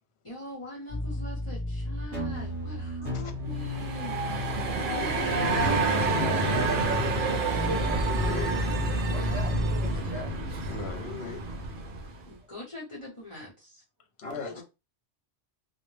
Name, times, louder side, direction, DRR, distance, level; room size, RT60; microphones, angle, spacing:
voice 1, 0.2-4.2 4.8-5.6 12.3-13.8, left 2 dB, 30° left, 0.8 m, -42 dB
sound 1, 0.9-9.9, left 1 dB, 35° right, 1.0 m, -32 dB
sound 2, 3.5-12.2, right 3 dB, 60° right, 0.7 m, -29 dB
voice 2, 8.2-8.6 10.7-11.4 14.2-14.6, left 6 dB, 75° left, 0.9 m, -38 dB
voice 3, 9.1-10.3 12.2-12.3 14.2-14.6, equal, 15° right, 0.6 m, -41 dB
2.1 x 2.0 x 3.1 m
omnidirectional pair, 1.1 m